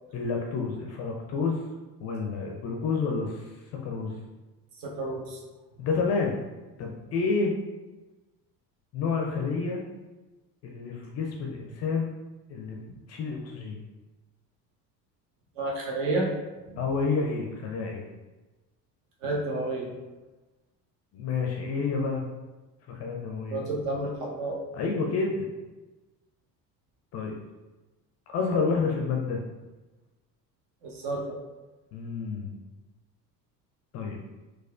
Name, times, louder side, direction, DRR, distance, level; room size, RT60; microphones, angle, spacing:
voice 1, 0.1-1.6 2.0-3.5 3.8-4.1 5.8-6.4 6.8-7.5 8.9-9.8 10.6-12.1 12.5-12.8 13.1-13.8 16.8-18.0 21.1-22.2 22.9-23.6 24.7-25.5 27.1-27.3 28.3-29.4 31.9-32.5 33.9-34.2, left 4 dB, 35° left, 1 dB, 0.4 m, -29 dB
voice 2, 4.8-5.4 15.6-16.3 16.7-16.8 19.2-19.9 23.5-24.6 30.8-31.3, right 2 dB, 55° right, -1 dB, 1.0 m, -30 dB
4.1 x 2.4 x 2.4 m, 1.1 s
figure-of-eight pair, 60°, 50 cm